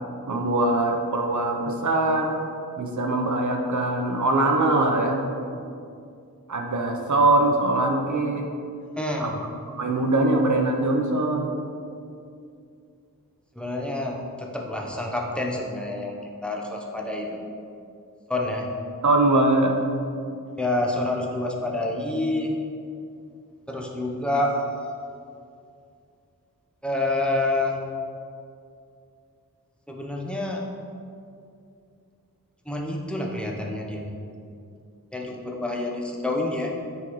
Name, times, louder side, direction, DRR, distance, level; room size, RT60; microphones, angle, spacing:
voice 1, 0.3-2.4 2.8-5.2 6.5-8.5 9.2-9.3 9.7-11.6 19.0-19.7, right 2 dB, 60° right, 2 dB, 0.8 m, -22 dB
voice 2, 9.0-9.3 9.8-9.9 13.6-17.4 18.3-18.7 20.6-22.6 23.7-24.5 26.8-27.8 29.9-30.6 32.7-34.1 35.1-36.7, left 2 dB, 5° left, -1 dB, 0.8 m, -28 dB
8.9 x 3.9 x 3.1 m, 2.5 s
wide cardioid pair, 65°, 34 cm